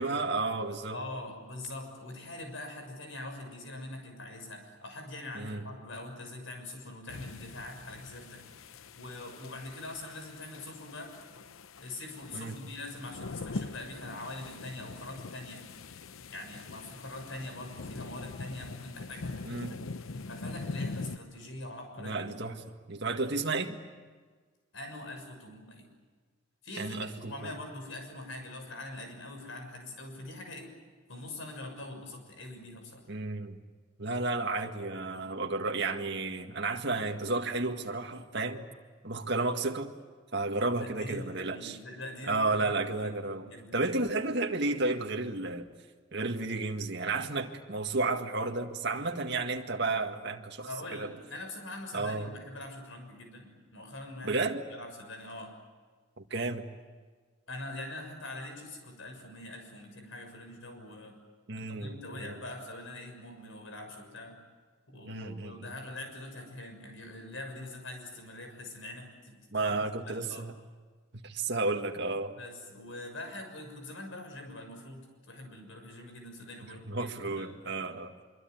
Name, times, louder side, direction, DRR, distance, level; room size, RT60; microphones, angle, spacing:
voice 1, 0.0-1.0 5.4-5.6 12.3-12.5 19.4-19.7 22.0-22.6 22.9-23.8 26.8-27.3 33.1-33.6 34.0-38.7 39.0-39.9 40.3-41.8 42.2-43.5 43.7-45.7 46.1-51.1 51.9-52.3 54.2-54.6 56.2-56.6 61.5-62.4 65.1-65.7 69.5-70.5 71.2-72.3 76.9-78.1, right 3 dB, 55° right, 4 dB, 1.9 m, -32 dB
voice 2, 0.9-8.4 9.0-11.1 11.8-15.6 16.3-19.8 20.0-22.4 24.7-25.9 26.6-30.7 31.1-33.1 40.7-43.9 50.7-54.4 54.7-55.6 57.5-61.2 61.5-64.4 64.9-69.7 70.0-70.5 72.4-77.6, left 2 dB, 70° left, 5 dB, 6.6 m, -43 dB
sound 1, 7.1-21.2, left 3 dB, 85° left, 0.8 m, -43 dB
24.5 x 24.5 x 9.4 m, 1.5 s
head